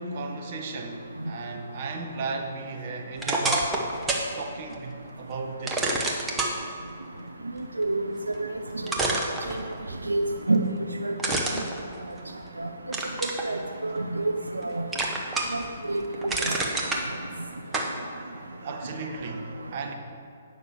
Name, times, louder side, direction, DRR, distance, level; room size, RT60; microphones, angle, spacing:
voice 1, 0.0-3.7 4.3-6.0 18.2-19.9, right 3 dB, 45° right, 3 dB, 1.3 m, -35 dB
sound 1, 3.2-4.3 4.7-4.8 5.7-6.5 8.3-8.4 8.9-10.0 11.2-12.5 12.9-13.4 14.0-14.6 14.9-15.7 16.0-17.0 17.7-17.9, right 2 dB, 10° right, 1.2 m, -27 dB
voice 2, 7.8-8.5 8.8-8.9 9.5-9.6 10.1-10.7 11.0-11.1 12.6-12.7 13.4-14.2 14.5-14.8 15.5-15.6 15.9-16.0 16.4-16.6, right 2 dB, 90° right, 5 dB, 0.6 m, -27 dB
9.3 x 6.1 x 7.1 m, 2.5 s
figure-of-eight pair, 130°, 0 cm